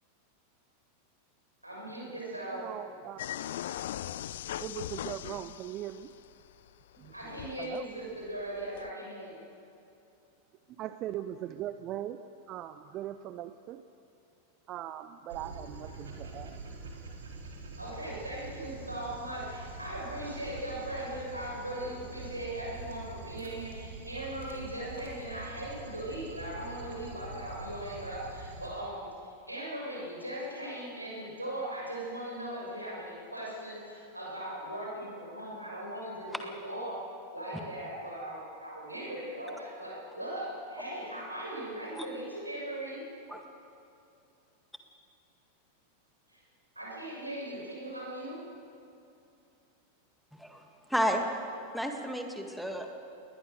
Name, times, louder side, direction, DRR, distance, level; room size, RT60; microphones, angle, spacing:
voice 1, 1.6-2.7 7.1-9.4 17.8-43.0 46.3-46.4 46.7-48.4, right 1 dB, 85° right, -3 dB, 6.9 m, -39 dB
voice 2, 2.5-3.2 4.6-6.1 7.0-7.1 7.6-8.0 10.8-13.8 14.7-16.9, right 12 dB, 35° right, 11 dB, 0.6 m, -40 dB
sound 1, 3.2-6.7 6.9-8.9, left 12 dB, 60° left, 0.4 m, -39 dB
Dog, 15.3-28.7, right 3 dB, 65° right, 3.6 m, -45 dB
voice 3, 50.9-51.2 51.7-52.9, equal, ahead, 3 dB, 1.9 m, -31 dB
21.0 x 19.5 x 6.7 m, 2.7 s
figure-of-eight pair, 90°, 0 cm